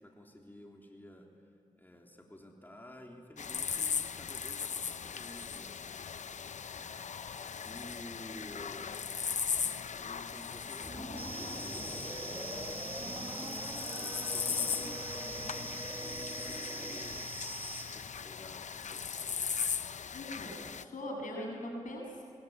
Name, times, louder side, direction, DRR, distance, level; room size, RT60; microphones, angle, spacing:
voice 1, 0.0-1.4 1.8-6.3 6.7-7.0 7.6-8.9 9.9-13.6 13.9-15.6 16.1-17.5 17.9-19.3, equal, 15° left, 0 dB, 3.5 m, -52 dB
sound 1, 3.4-20.8, left 6 dB, 65° left, 0.7 m, -38 dB
sound 2, 10.8-17.3, right 1 dB, 20° right, 1.7 m, -45 dB
sound 3, 11.2-17.9, right 3 dB, 45° right, 5.9 m, -43 dB
voice 2, 20.1-22.2, left 1 dB, 80° left, 0 dB, 7.4 m, -41 dB
23.0 x 22.0 x 9.4 m, 2.2 s
cardioid pair, 45°, 13 cm